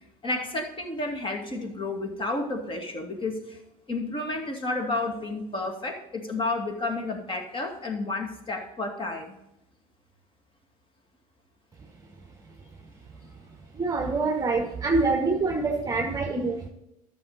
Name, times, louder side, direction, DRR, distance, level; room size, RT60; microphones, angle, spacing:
voice 1, 0.2-3.6 3.9-9.4, left 2 dB, 30° left, 2.3 m, -31 dB
voice 2, 13.7-16.7, right 3 dB, 20° right, 1.1 m, -25 dB
13.5 x 6.4 x 4.1 m
figure-of-eight pair, 65°, 18 cm